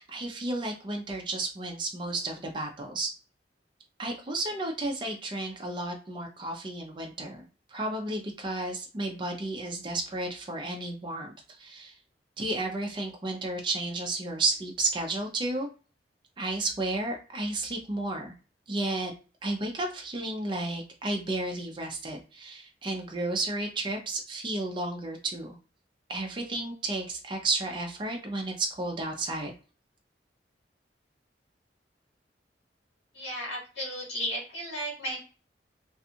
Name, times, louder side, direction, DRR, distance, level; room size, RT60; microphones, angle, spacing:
voice 1, 0.0-3.1 4.0-7.4 7.7-11.9 12.4-15.7 16.4-18.3 18.7-19.1 19.4-25.5 26.1-29.5, right 2 dB, 25° right, 2 dB, 0.5 m, -32 dB
voice 2, 33.1-35.2, equal, 85° left, -5 dB, 1.4 m, -34 dB
2.5 x 2.3 x 2.8 m, 0.35 s
head